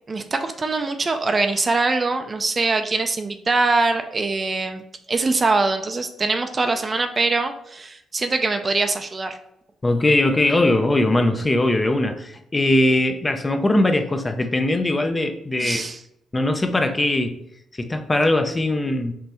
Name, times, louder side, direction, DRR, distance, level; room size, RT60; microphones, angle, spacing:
voice 1, 0.1-4.8 5.1-9.4 15.6-16.0, right 3 dB, 30° right, 7 dB, 0.4 m, -23 dB
voice 2, 9.8-15.8 16.3-17.4 17.8-19.1, left 1 dB, 20° left, 6 dB, 0.5 m, -20 dB
5.4 x 3.2 x 3.0 m, 0.78 s
cardioid pair, 90°, 0 cm